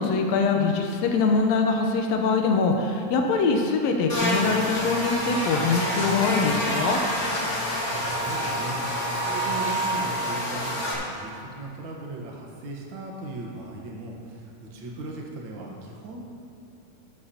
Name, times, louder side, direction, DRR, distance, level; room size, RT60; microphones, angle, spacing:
voice 1, 0.0-7.0, left 4 dB, 80° left, 2 dB, 1.5 m, -23 dB
Buzz, 4.1-10.9, equal, 35° left, 1.3 m, -27 dB
voice 2, 7.8-16.2, right 2 dB, 85° right, -1 dB, 1.0 m, -38 dB
11.5 x 11.5 x 2.8 m, 2.5 s
omnidirectional pair, 4.0 m